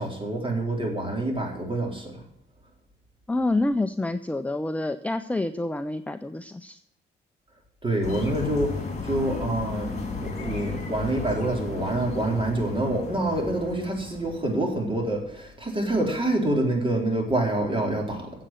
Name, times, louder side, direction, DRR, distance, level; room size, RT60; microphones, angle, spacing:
voice 1, 0.0-2.2 7.8-8.7 9.0-18.3, right 1 dB, 25° right, 1 dB, 3.9 m, -26 dB
voice 2, 3.3-6.8, left 2 dB, 5° left, 9 dB, 0.5 m, -27 dB
sound 1, 8.0-14.8, left 4 dB, 35° left, 3.7 m, -34 dB
8.9 x 7.6 x 9.0 m, 0.77 s
cardioid pair, 90°, 20 cm